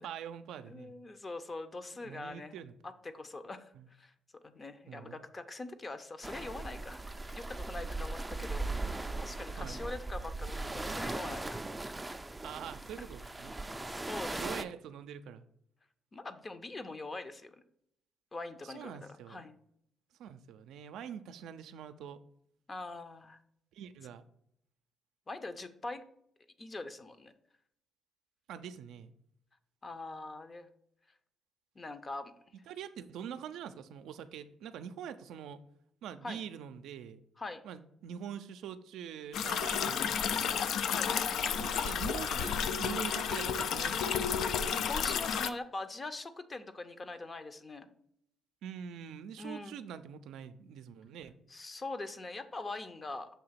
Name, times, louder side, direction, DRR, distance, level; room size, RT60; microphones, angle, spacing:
voice 1, 0.0-0.9 2.0-2.7 3.7-3.9 4.9-5.2 8.6-8.9 9.6-9.8 12.4-13.5 14.4-15.5 18.6-19.4 20.2-22.2 23.7-24.2 28.5-29.1 32.7-35.6 36.0-37.2 37.6-40.6 41.4-44.2 48.6-51.4, right 8 dB, 85° right, 10 dB, 0.4 m, -44 dB
voice 2, 0.7-2.6 2.8-3.7 4.0-4.1 4.4-8.7 9.2-11.6 13.9-14.7 16.1-17.6 18.3-19.6 22.7-23.4 25.3-26.0 26.6-27.3 29.8-30.7 31.8-32.3 36.2-36.4 37.4-37.6 40.9-41.1 44.6-47.9 49.4-49.8 51.5-53.3, left 2 dB, 30° left, 10 dB, 0.6 m, -43 dB
sound 1, 6.2-14.6, right 2 dB, 15° right, 0.4 m, -39 dB
sound 2, 39.3-45.5, left 7 dB, 75° left, 0.3 m, -32 dB
6.8 x 2.9 x 5.7 m, 0.71 s
cardioid pair, 90°, 0 cm